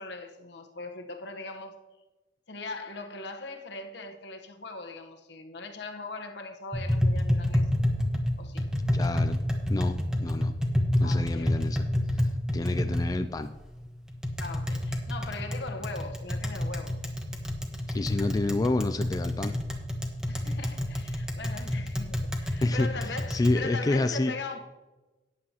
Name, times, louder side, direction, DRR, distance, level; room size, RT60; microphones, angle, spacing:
voice 1, 0.0-1.8 2.5-7.7 8.4-8.7 11.0-11.7 14.4-17.0 20.3-24.6, left 3 dB, 70° left, 1.1 m, -40 dB
Tap, 6.7-23.5, left 1 dB, 5° right, 1.2 m, -29 dB
voice 2, 8.9-9.4 9.7-10.5 11.0-13.5 17.9-19.6 22.6-24.3, left 2 dB, 20° left, 0.3 m, -29 dB
14.0 x 9.6 x 2.9 m
head